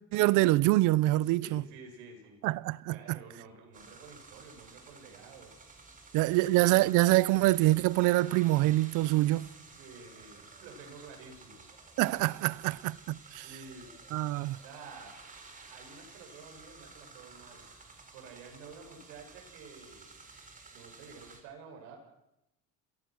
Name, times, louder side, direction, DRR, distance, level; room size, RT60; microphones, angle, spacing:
voice 1, 0.1-1.6 2.4-2.9 6.1-9.5 12.0-13.4 14.1-14.6, right 18 dB, 65° right, 0.7 m, -25 dB
voice 2, 1.2-2.4 2.9-5.5 6.0-6.5 9.8-11.6 13.4-13.9 14.5-15.2 15.7-17.7 18.1-20.3 20.7-22.0, right 4 dB, 85° right, 7.6 m, -51 dB
sound 1, 3.7-21.4, right 4 dB, 25° right, 4.5 m, -53 dB
27.5 x 18.5 x 6.3 m
cardioid pair, 120°, 33 cm